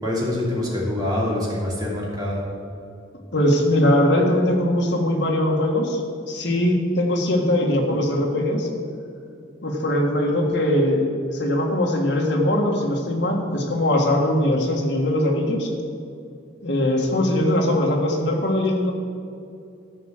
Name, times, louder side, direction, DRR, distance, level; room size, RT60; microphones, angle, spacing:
voice 1, 0.0-2.5, left 1 dB, 20° right, -5 dB, 2.9 m, -25 dB
voice 2, 3.3-6.0 6.3-8.7 9.6-15.7 16.6-18.9, left 1 dB, 60° left, -1 dB, 1.8 m, -21 dB
13.5 x 5.0 x 7.4 m, 2.5 s
head